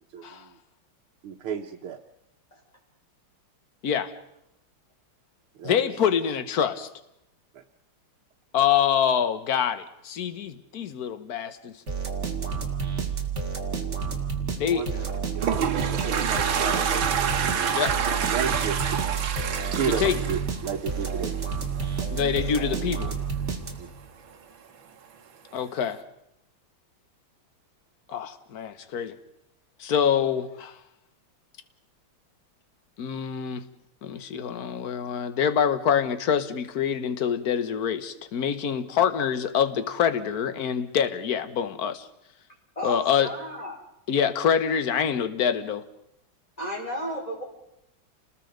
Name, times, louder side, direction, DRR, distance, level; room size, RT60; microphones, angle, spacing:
voice 1, 0.1-0.6 1.2-2.0 5.6-5.9 7.5-7.6 14.6-15.1 15.3-16.9 17.2-17.7 18.3-19.0 19.6-21.3 21.7-21.9 23.6-23.9, right 7 dB, 85° right, 3 dB, 2.0 m, -33 dB
voice 2, 5.6-6.9 8.5-11.7 14.6-14.8 17.7-17.9 20.0-20.2 22.1-23.1 25.5-26.0 28.1-29.2 29.8-30.8 33.0-33.6 34.0-42.1 42.8-43.3 44.1-45.8, left 8 dB, 50° left, 11 dB, 1.5 m, -25 dB
sound 1, 11.9-24.1, right 6 dB, 35° right, 2.4 m, -30 dB
Toilet flush, 15.0-21.4, right 7 dB, 70° right, 2.1 m, -27 dB
voice 3, 42.7-43.8 46.6-47.4, equal, 15° left, 0 dB, 4.9 m, -33 dB
29.5 x 20.0 x 5.2 m, 0.82 s
omnidirectional pair, 2.3 m